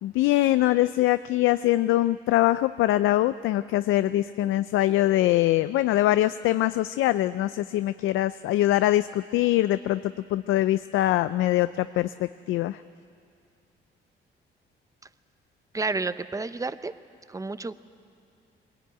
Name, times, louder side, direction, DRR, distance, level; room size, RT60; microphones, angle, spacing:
voice 1, 0.0-12.8, left 15 dB, 85° left, 13 dB, 0.4 m, -23 dB
voice 2, 15.7-16.9 17.3-17.7, right 3 dB, 15° right, 13 dB, 0.7 m, -30 dB
21.5 x 17.5 x 9.2 m, 2.4 s
cardioid pair, 90°, 20 cm